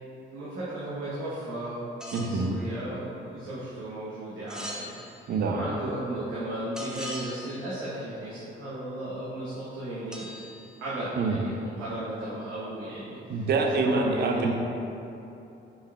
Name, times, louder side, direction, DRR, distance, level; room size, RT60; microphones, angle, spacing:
voice 1, 0.3-1.8 2.1-4.9 5.5-10.3 10.8-13.5 13.8-14.5, right 1 dB, 85° right, -9 dB, 0.9 m, -35 dB
sound 1, 2.0-2.4 4.5-5.5 6.7-7.8 10.1-11.3, equal, 5° right, 0.6 m, -41 dB
voice 2, 2.1-2.5 5.3-5.6 11.2-11.4 13.3-14.5, right 4 dB, 55° right, 3 dB, 0.5 m, -26 dB
5.3 x 3.4 x 2.3 m, 2.9 s
cardioid pair, 90°, 20 cm